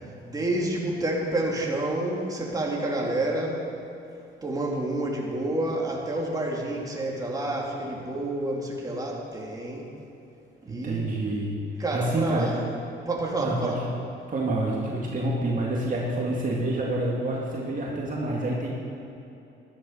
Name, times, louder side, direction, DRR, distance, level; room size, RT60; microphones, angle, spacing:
voice 1, 0.2-3.6 4.4-9.9 10.7-11.2 11.8-12.6 13.1-13.8, right 1 dB, 20° right, -3 dB, 2.9 m, -29 dB
voice 2, 10.6-12.5 13.4-13.8 14.3-18.7, right 1 dB, 45° right, -3 dB, 2.2 m, -28 dB
13.5 x 11.5 x 5.6 m, 2.8 s
cardioid pair, 90°, 20 cm